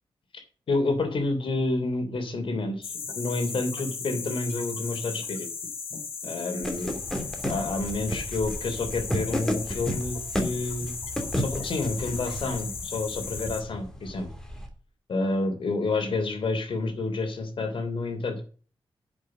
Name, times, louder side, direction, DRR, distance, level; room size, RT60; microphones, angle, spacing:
voice 1, 0.7-5.5 6.2-7.0 7.4-10.9 11.4-14.3 15.1-18.4, left 3 dB, 65° left, 7 dB, 3.2 m, -29 dB
sound 1, 2.8-13.6, left 5 dB, 85° left, 2.8 m, -36 dB
sound 2, 6.6-14.7, equal, 5° left, 2.8 m, -33 dB
10.5 x 6.4 x 7.6 m, 0.40 s
wide cardioid pair, 130°, 9 cm